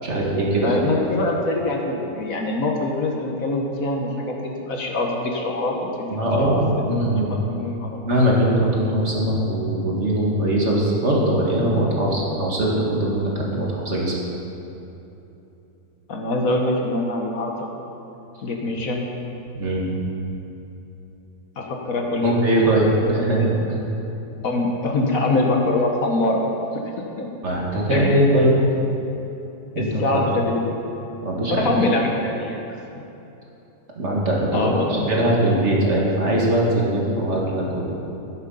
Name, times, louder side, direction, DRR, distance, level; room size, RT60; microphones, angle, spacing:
voice 1, 0.0-0.8 6.1-7.3 8.1-14.1 19.6-19.9 22.2-23.8 27.4-28.5 29.7-30.2 31.2-31.7 34.0-37.9, right 1 dB, 45° right, -3 dB, 2.0 m, -21 dB
voice 2, 0.6-6.1 7.5-8.0 16.1-17.7 18.4-19.1 21.6-22.4 23.0-23.1 23.4-23.5 24.4-26.4 27.2-27.3 27.9-28.2 29.8-30.8 31.5-32.7 34.5-35.1 35.8-36.0, left 2 dB, 60° left, 1 dB, 1.4 m, -24 dB
12.5 x 7.3 x 5.5 m, 3.0 s
omnidirectional pair, 1.8 m